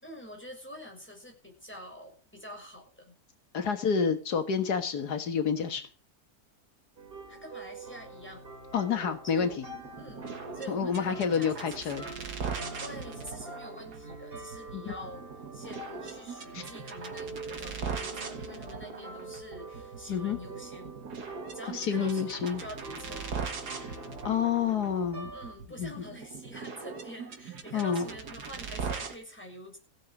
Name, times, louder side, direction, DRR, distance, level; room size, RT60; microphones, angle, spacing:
voice 1, 0.0-3.1 7.3-8.5 9.3-9.6 10.0-10.3 10.5-12.2 12.8-15.2 15.5-21.0 21.5-23.4 25.3-29.8, equal, 5° left, 1 dB, 6.3 m, -46 dB
voice 2, 3.5-5.9 8.7-9.5 10.7-12.0 14.7-14.9 16.5-16.6 20.1-20.4 21.7-22.6 23.8-24.0 24.2-25.3 25.8-25.9 27.7-28.1, left 6 dB, 85° left, 9 dB, 2.1 m, -29 dB
sound 1, 7.0-25.5, right 3 dB, 35° right, 2.6 m, -45 dB
sound 2, 9.7-29.2, right 5 dB, 90° right, 2.3 m, -40 dB
16.5 x 7.7 x 6.6 m, 0.35 s
omnidirectional pair, 1.7 m